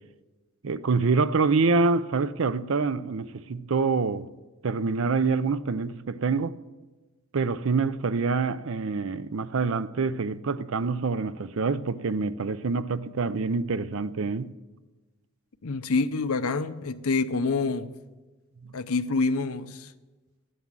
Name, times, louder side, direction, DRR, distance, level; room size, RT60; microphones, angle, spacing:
voice 1, 0.6-4.3 4.6-6.6 7.3-14.5, right 4 dB, 60° right, 0.5 m, -26 dB
voice 2, 15.6-17.9 18.7-19.9, left 3 dB, 80° left, 0.7 m, -27 dB
11.5 x 9.5 x 7.5 m
head